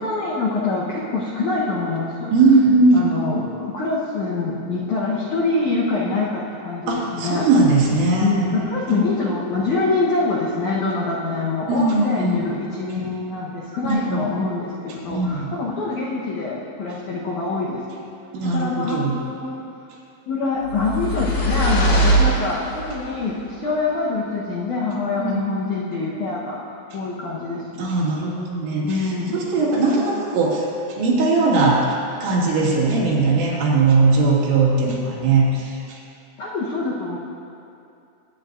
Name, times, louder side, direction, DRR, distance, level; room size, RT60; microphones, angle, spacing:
voice 1, 0.0-2.3 2.9-7.5 8.2-17.8 18.4-19.6 20.3-27.8 28.8-29.4 36.4-37.2, left 3 dB, 80° left, -6 dB, 1.7 m, -25 dB
voice 2, 2.3-3.1 6.9-9.1 11.7-12.4 13.8-14.3 15.1-15.5 18.3-19.1 25.2-25.5 27.8-31.9 32.2-36.0, right 3 dB, 80° right, -5 dB, 4.2 m, -19 dB
sound 1, 20.6-23.0, right 1 dB, 50° left, 3.4 m, -20 dB
21.5 x 9.5 x 2.6 m, 2.7 s
omnidirectional pair, 5.2 m